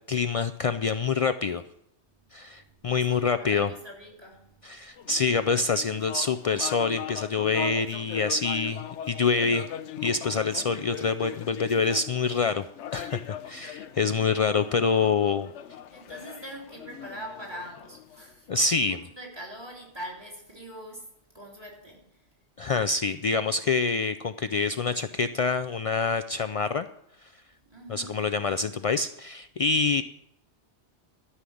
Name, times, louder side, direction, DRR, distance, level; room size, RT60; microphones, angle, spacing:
voice 1, 0.1-1.6 2.3-3.7 4.6-9.7 10.0-12.6 12.9-15.5 18.5-19.0 22.6-26.9 27.2-27.3 27.9-30.0, left 4 dB, 65° left, 0.3 m, -26 dB
voice 2, 2.4-2.8 3.0-4.9 15.9-18.5 18.8-18.9 19.2-22.2 27.6-28.3, right 1 dB, 20° right, 3.0 m, -43 dB
sound 1, 5.0-18.7, left 10 dB, 85° left, 1.0 m, -40 dB
13.0 x 5.7 x 8.5 m
omnidirectional pair, 1.2 m